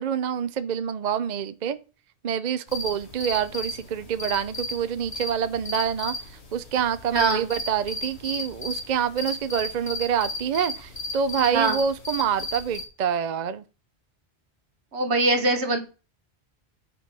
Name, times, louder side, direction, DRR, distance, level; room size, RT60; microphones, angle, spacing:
voice 1, 0.0-1.8 2.2-13.6, right 8 dB, 50° right, 0.6 m, -27 dB
sound 1, 2.7-12.8, left 2 dB, 80° left, 2.6 m, -35 dB
voice 2, 7.1-7.5 11.5-11.8 14.9-15.8, right 3 dB, 80° right, 1.8 m, -22 dB
9.9 x 5.4 x 6.1 m
omnidirectional pair, 1.1 m